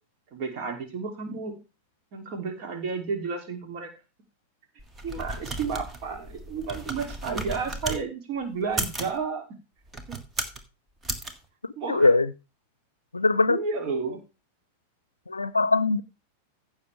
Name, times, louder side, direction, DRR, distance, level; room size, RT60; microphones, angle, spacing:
voice 1, 0.3-1.6 2.1-3.9 5.0-9.4 10.1-10.2 11.8-12.1 13.5-14.2, right 5 dB, 45° right, 3.0 m, -32 dB
sound 1, 4.8-8.0 8.6-9.2 9.9-10.6 11.0-11.3, right 2 dB, 15° right, 1.7 m, -34 dB
voice 2, 11.9-12.3 13.1-13.6 15.3-16.0, left 3 dB, 80° left, 0.5 m, -21 dB
15.5 x 6.7 x 3.5 m
figure-of-eight pair, 90°, 0 cm